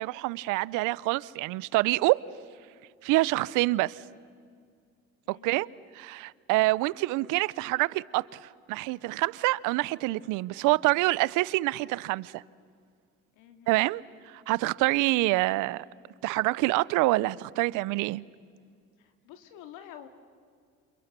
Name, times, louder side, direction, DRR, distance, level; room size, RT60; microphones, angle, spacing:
voice 1, 0.0-2.2 3.0-4.0 5.3-5.7 6.0-8.4 8.7-12.4 13.7-15.8 16.2-18.2, right 20 dB, 75° right, 0.7 m, -26 dB
voice 2, 5.3-5.7 13.3-13.7 19.0-20.1, left 10 dB, 85° left, 2.4 m, -49 dB
28.5 x 28.5 x 6.9 m
supercardioid pair, 85°, 31 cm